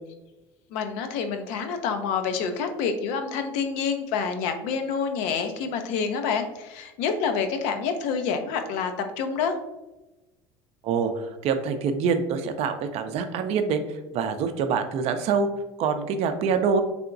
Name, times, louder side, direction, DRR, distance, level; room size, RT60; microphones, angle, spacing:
voice 1, 0.7-9.6, left 6 dB, 70° left, 7 dB, 0.5 m, -27 dB
voice 2, 10.8-13.8 14.1-15.5 15.8-16.8, right 6 dB, 60° right, 8 dB, 0.4 m, -25 dB
3.4 x 2.9 x 2.5 m, 1.0 s
hypercardioid pair, 80°, 12 cm